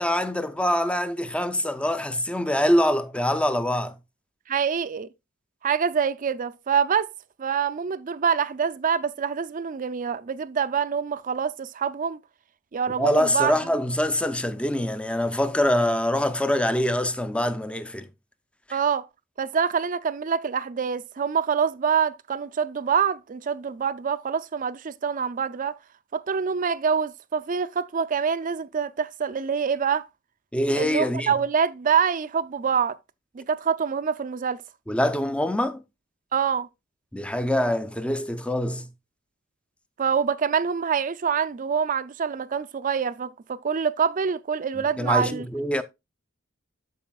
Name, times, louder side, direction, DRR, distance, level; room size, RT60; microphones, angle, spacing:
voice 1, 0.0-4.0 13.0-18.1 18.7-18.8 30.5-31.3 34.9-35.8 37.1-38.9 44.7-45.8, left 1 dB, 5° left, 0.5 m, -24 dB
voice 2, 4.5-5.1 5.6-7.1 7.4-12.2 12.7-13.6 18.7-19.1 19.4-25.7 26.1-30.1 30.7-33.0 33.3-34.6 36.3-36.7 40.0-45.5, right 6 dB, 40° right, 0.4 m, -25 dB
13.0 x 4.9 x 2.3 m
head